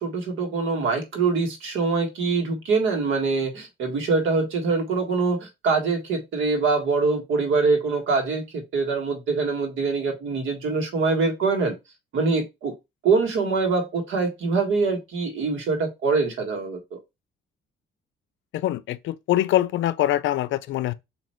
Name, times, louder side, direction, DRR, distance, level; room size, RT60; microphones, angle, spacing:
voice 1, 0.0-11.7 12.1-12.7 13.0-17.0, right 4 dB, 75° right, 1.5 m, -24 dB
voice 2, 18.5-20.9, left 13 dB, 75° left, 0.4 m, -24 dB
4.3 x 2.8 x 4.3 m
cardioid pair, 90°, 20 cm